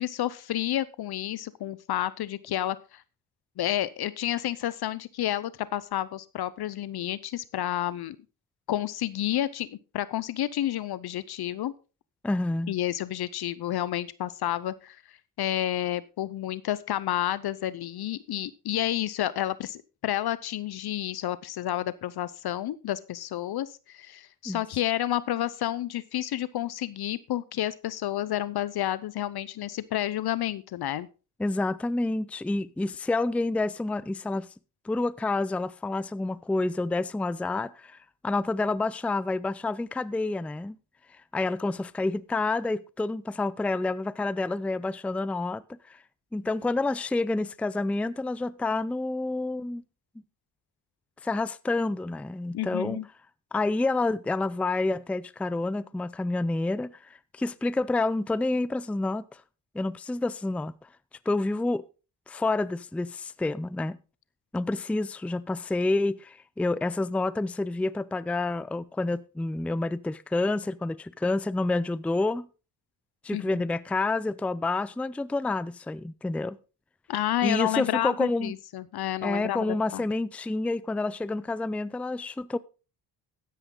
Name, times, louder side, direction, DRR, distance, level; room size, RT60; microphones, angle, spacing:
voice 1, 0.0-3.0 3.6-8.2 8.7-11.7 12.7-31.1 52.5-53.1 73.3-73.6 77.1-80.0, left 13 dB, 65° left, 0.8 m, -30 dB
voice 2, 12.2-12.7 24.5-24.6 31.4-34.5 34.8-38.0 38.2-40.8 41.3-46.0 46.3-49.8 51.2-53.0 53.5-59.4 59.7-60.9 61.3-61.8 62.3-64.0 64.5-72.5 73.2-76.6 77.4-78.5 79.2-82.6, left 2 dB, 5° left, 0.4 m, -28 dB
13.0 x 9.9 x 3.8 m
cardioid pair, 70°, 42 cm